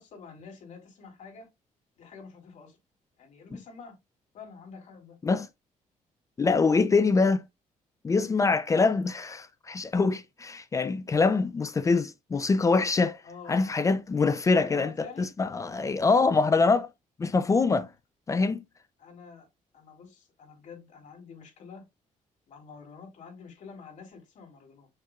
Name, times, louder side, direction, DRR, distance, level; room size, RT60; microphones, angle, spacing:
voice 1, 0.0-1.5 2.0-2.8 3.2-3.9 4.3-5.2 13.2-13.8 14.5-15.3 19.0-19.5 19.7-21.8 22.5-24.9, left 5 dB, 65° left, 3.9 m, -47 dB
voice 2, 6.4-7.4 8.0-13.2 13.5-14.9 15.4-16.9 17.2-17.9 18.3-18.6, left 4 dB, 25° left, 0.5 m, -24 dB
7.0 x 6.5 x 2.4 m
cardioid pair, 150°, 14 cm